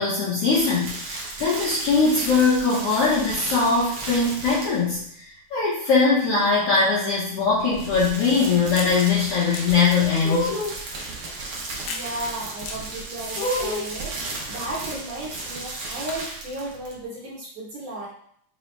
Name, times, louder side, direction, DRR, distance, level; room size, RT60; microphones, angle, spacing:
voice 1, 0.0-10.5, left 4 dB, 60° left, -8 dB, 1.7 m, -21 dB
sound 1, 0.5-5.0 7.5-17.0, right 3 dB, 80° right, 1.1 m, -35 dB
sound 2, 8.8-9.0 9.5-9.7 10.2-10.8 11.9-12.1 12.7-12.8 13.4-13.9, left 1 dB, 75° left, 2.2 m, -28 dB
voice 2, 11.8-14.2 14.5-18.1, right 1 dB, 60° right, -7 dB, 1.9 m, -34 dB
6.9 x 2.4 x 3.2 m, 0.65 s
omnidirectional pair, 3.8 m